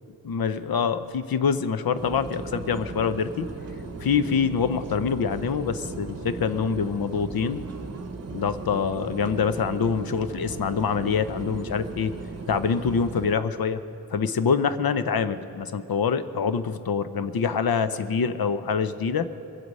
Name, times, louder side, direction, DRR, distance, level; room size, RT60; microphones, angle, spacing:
voice 1, 0.2-3.5 4.0-7.6 8.3-12.1 12.5-13.8 14.1-19.3, left 6 dB, 65° left, 11 dB, 0.7 m, -25 dB
sound 1, 1.9-13.3, right 4 dB, 40° right, 0.9 m, -37 dB
22.5 x 7.9 x 5.4 m, 2.8 s
wide cardioid pair, 70°, 38 cm